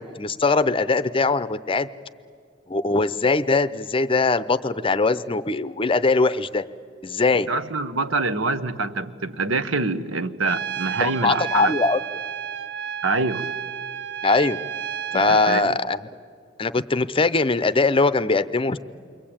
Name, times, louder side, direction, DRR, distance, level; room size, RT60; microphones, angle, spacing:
voice 1, 0.0-1.9 2.7-6.6 7.0-7.5 11.0-12.0 14.2-14.6 15.1-16.0 16.6-18.8, left 3 dB, 25° left, 0.6 m, -21 dB
voice 2, 7.5-11.8 13.0-13.5 15.1-15.7, right 3 dB, 90° right, 1.2 m, -25 dB
Trumpet, 10.4-15.7, right 8 dB, 60° right, 0.6 m, -31 dB
29.0 x 23.5 x 8.8 m
head